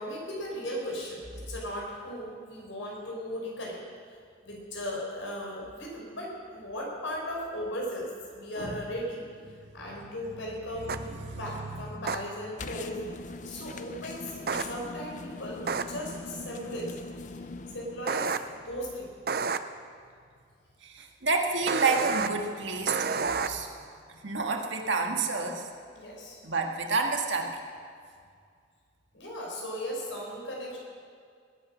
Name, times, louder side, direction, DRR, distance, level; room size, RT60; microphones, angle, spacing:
voice 1, 0.0-3.8 4.4-9.2 9.7-13.0 13.4-16.9 17.3-17.4 17.7-18.3 18.6-19.1 25.9-26.4 29.1-30.8, equal, 75° left, -2 dB, 4.9 m, -37 dB
voice 2, 9.5-10.0 10.7-11.9 20.8-23.7 24.1-25.7 26.4-27.6, right 4 dB, 70° right, 3 dB, 1.7 m, -30 dB
sound 1, 10.9-11.0 12.1-12.2 14.5-14.6 15.7-15.8 18.1-18.4 19.3-19.6 21.7-22.3 22.9-23.5, right 5 dB, 50° right, 0.6 m, -29 dB
sound 2, 12.6-18.3, left 3 dB, 40° left, 0.6 m, -41 dB
20.5 x 10.0 x 6.4 m, 2.2 s
head